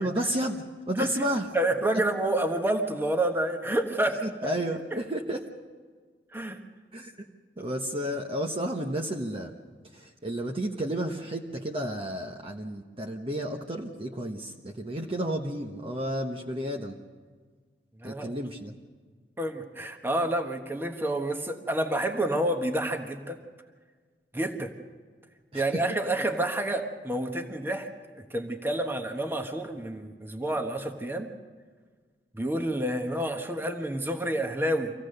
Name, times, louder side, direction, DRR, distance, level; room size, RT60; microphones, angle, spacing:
voice 1, 0.0-1.5 4.2-5.5 6.9-7.1 7.6-9.6 9.9-17.0 18.0-18.7 25.5-25.8, right 1 dB, 30° right, 2 dB, 1.0 m, -32 dB
voice 2, 1.5-4.2 6.3-6.6 18.0-18.4 19.4-23.4 24.3-24.7 25.5-27.9 28.1-31.3 32.3-34.9, right 1 dB, 15° right, 4 dB, 1.3 m, -29 dB
25.5 x 16.0 x 6.6 m, 1.5 s
head